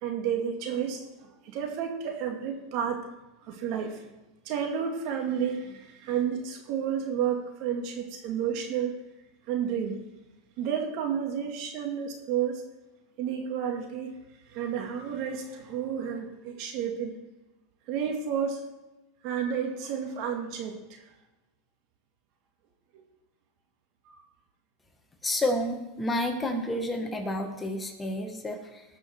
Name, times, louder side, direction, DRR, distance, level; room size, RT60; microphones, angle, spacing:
voice 1, 0.0-3.1 3.5-4.1 4.4-8.9 9.5-10.0 10.6-12.6 13.2-14.1 14.5-17.1 17.9-18.6 19.2-21.0 22.9-23.0 24.1-24.2, right 8 dB, 60° right, 3 dB, 2.3 m, -31 dB
voice 2, 25.2-28.8, left 1 dB, 15° left, 4 dB, 1.7 m, -30 dB
19.0 x 6.3 x 4.6 m, 1.0 s
supercardioid pair, 115°, 0 cm